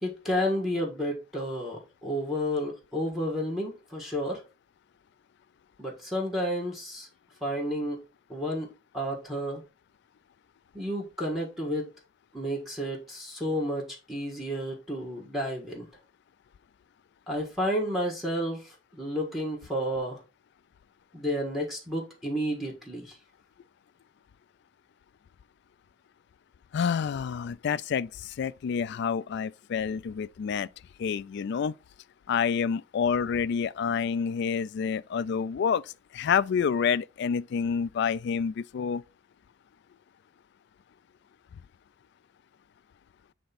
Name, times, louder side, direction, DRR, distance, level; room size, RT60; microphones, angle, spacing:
voice 1, 0.0-4.4 5.8-7.1 7.4-8.0 8.3-8.7 8.9-9.6 10.7-11.9 12.3-15.9 17.3-18.6 18.9-20.2 21.1-23.2, equal, ahead, 1.5 m, -31 dB
voice 2, 26.7-30.7 31.0-31.7 32.3-35.8 36.1-39.0, left 6 dB, 60° left, 0.3 m, -28 dB
7.7 x 3.4 x 4.1 m
head